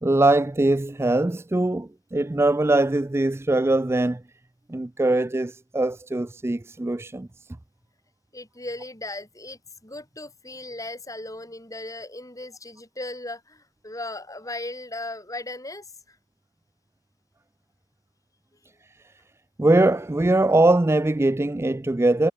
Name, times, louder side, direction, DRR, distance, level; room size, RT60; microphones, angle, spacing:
voice 1, 0.0-4.2 4.7-7.3 19.6-22.3, right 2 dB, 10° right, 0.3 m, -21 dB
voice 2, 8.3-16.2, left 2 dB, 15° left, 6.4 m, -37 dB
head